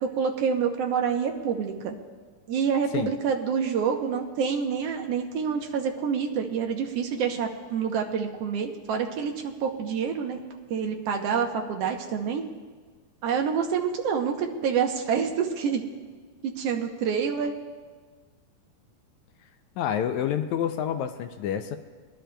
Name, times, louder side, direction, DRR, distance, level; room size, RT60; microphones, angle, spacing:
voice 1, 0.0-1.9 2.5-10.4 10.7-12.4 13.2-15.8 16.4-17.5, right 6 dB, 70° right, 3 dB, 1.6 m, -27 dB
voice 2, 19.8-21.8, left 9 dB, 80° left, 8 dB, 1.8 m, -28 dB
23.5 x 11.5 x 2.3 m, 1.5 s
omnidirectional pair, 3.6 m